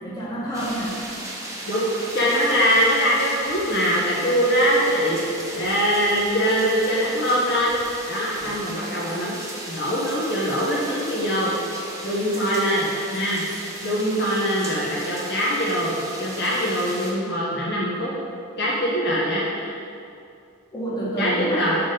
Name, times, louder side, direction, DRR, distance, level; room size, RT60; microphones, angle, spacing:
voice 1, 0.0-1.0 8.3-8.6 20.7-21.7, right 1 dB, 20° left, -7 dB, 1.4 m, -29 dB
sound 1, 0.5-17.1, right 1 dB, 15° right, 0.7 m, -36 dB
voice 2, 2.1-7.7 8.1-9.4 9.7-11.5 12.0-13.4 13.8-18.1 18.6-19.8 21.2-21.8, equal, 50° left, -6 dB, 0.9 m, -23 dB
6.1 x 3.7 x 5.2 m, 2.5 s
head